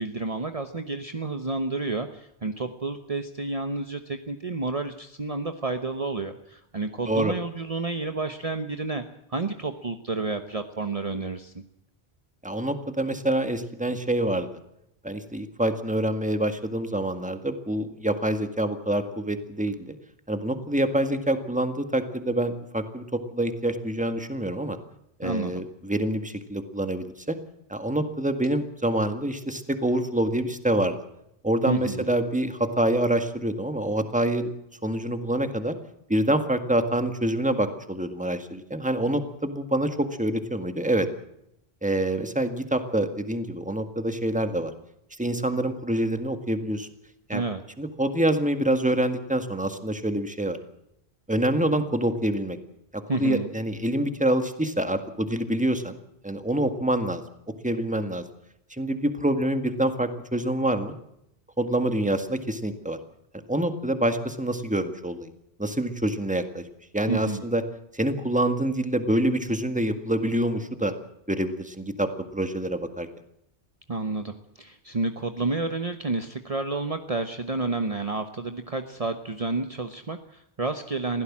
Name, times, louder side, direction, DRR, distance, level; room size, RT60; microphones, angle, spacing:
voice 1, 0.0-9.0 9.3-11.6 25.2-25.6 31.7-32.1 47.3-47.6 53.1-53.5 67.1-67.5 73.9-81.2, right 3 dB, 35° right, 7 dB, 1.1 m, -30 dB
voice 2, 12.4-14.5 15.0-19.9 20.3-24.8 25.2-27.4 27.7-31.0 31.4-34.5 34.8-35.8 36.1-41.1 41.8-44.7 45.2-46.9 47.3-47.4 47.8-50.6 51.3-52.6 52.9-56.0 56.2-57.2 57.6-58.2 58.7-60.9 61.6-63.0 63.5-65.3 65.6-66.7 66.9-67.6 67.9-70.9 71.3-73.1, right 1 dB, 5° right, 8 dB, 1.8 m, -26 dB
22.5 x 16.0 x 7.4 m, 0.79 s
omnidirectional pair, 1.1 m